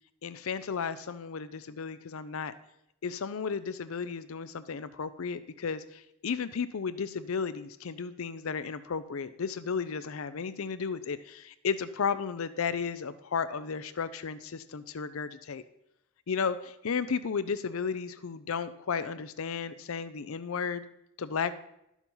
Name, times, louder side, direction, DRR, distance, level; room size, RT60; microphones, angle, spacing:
voice 1, 0.2-2.5 3.0-15.6 16.3-20.8 21.2-21.5, left 6 dB, 75° left, 14 dB, 0.5 m, -34 dB
12.0 x 7.2 x 5.5 m, 0.83 s
head